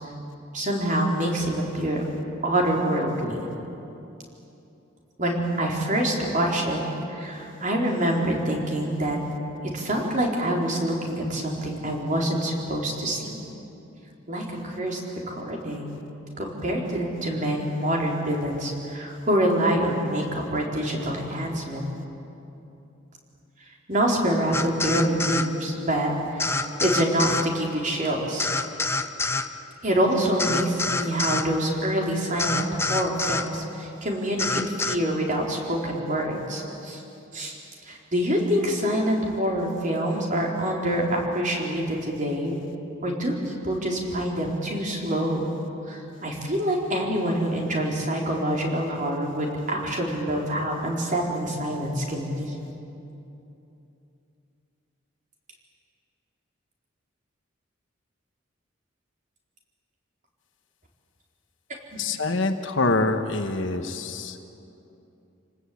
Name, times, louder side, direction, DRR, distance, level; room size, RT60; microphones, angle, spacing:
voice 1, 0.5-2.0 2.4-3.4 5.2-6.8 7.1-9.2 9.7-13.4 14.3-15.0 15.3-16.0 16.4-21.9 23.9-26.5 26.8-28.5 29.8-34.4 34.8-37.0 37.3-37.5 37.9-42.6 43.0-45.5 45.9-52.6 61.9-62.0, right 1 dB, 40° right, -1 dB, 4.1 m, -26 dB
sound 1, 24.5-25.5 26.4-27.5 28.4-29.5 30.4-31.5 32.4-33.5 34.4-35.0, left 3 dB, 15° left, 0.8 m, -26 dB
voice 2, 62.0-64.4, left 3 dB, 65° left, 7 dB, 1.4 m, -25 dB
28.0 x 19.5 x 8.6 m, 2.9 s
head